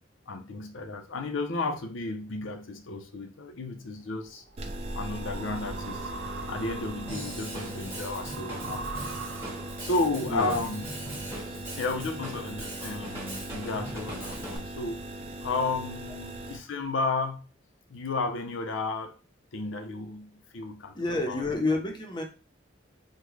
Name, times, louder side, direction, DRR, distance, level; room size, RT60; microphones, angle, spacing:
voice 1, 0.3-4.4 4.9-6.1 6.5-9.1 9.8-10.8 11.8-15.0 15.4-17.4 17.9-19.1 19.5-20.9 21.3-21.4, left 3 dB, 90° left, 0.6 m, -33 dB
sound 1, 4.2-10.0, right 3 dB, 80° right, 0.6 m, -41 dB
sound 2, 4.6-16.6, right 1 dB, 30° right, 0.4 m, -39 dB
Drum kit / Drum, 7.1-14.6, right 1 dB, 15° right, 0.9 m, -40 dB
voice 2, 10.3-10.7 11.5-11.6 20.9-22.2, left 2 dB, 25° left, 0.6 m, -29 dB
3.6 x 2.1 x 3.1 m
head